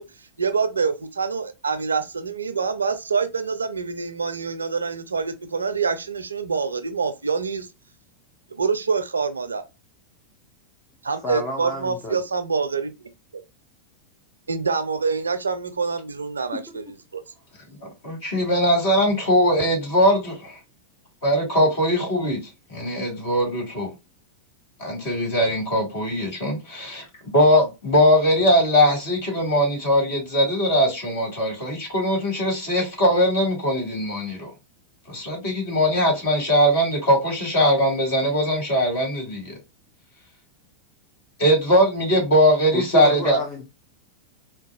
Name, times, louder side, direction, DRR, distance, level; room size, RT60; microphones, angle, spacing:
voice 1, 0.0-7.7 8.5-9.6 11.0-12.9 13.3-13.4 14.5-17.2, right 5 dB, 75° right, 0.4 m, -26 dB
voice 2, 11.2-12.2 16.7-16.8 42.7-43.6, left 1 dB, 25° left, 0.7 m, -30 dB
voice 3, 18.0-20.6 21.2-22.4 22.7-23.9 24.8-27.0 27.3-34.5 35.1-39.6 41.4-43.4, equal, 55° left, 2.1 m, -20 dB
3.8 x 2.2 x 2.4 m
figure-of-eight pair, 90°, 0 cm